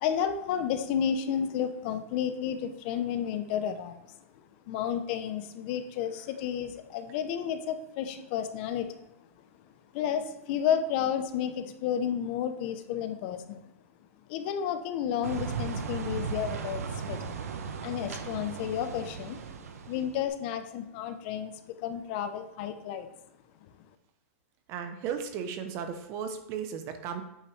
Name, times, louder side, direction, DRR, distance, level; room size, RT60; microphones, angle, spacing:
voice 1, 0.0-4.0 4.7-8.9 9.9-13.6 14.3-16.8 17.1-17.3 17.8-19.4 19.9-21.5 21.8-23.1, left 8 dB, 40° left, 9 dB, 0.7 m, -31 dB
sound 1, 15.2-20.2, right 6 dB, 90° right, 0.9 m, -36 dB
voice 2, 24.7-27.2, right 7 dB, 35° right, 7 dB, 0.8 m, -35 dB
8.6 x 5.4 x 3.2 m, 0.87 s
supercardioid pair, 150°, 8 cm